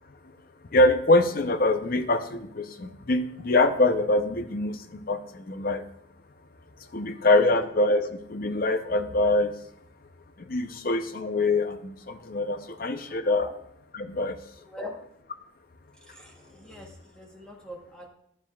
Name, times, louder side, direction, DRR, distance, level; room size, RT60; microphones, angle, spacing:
voice 1, 0.7-5.8 6.9-9.5 10.5-13.5 13.9-14.4, left 2 dB, 45° left, 9 dB, 0.6 m, -24 dB
voice 2, 16.1-18.1, left 1 dB, 5° left, -1 dB, 1.0 m, -42 dB
11.5 x 7.2 x 2.3 m, 0.72 s
head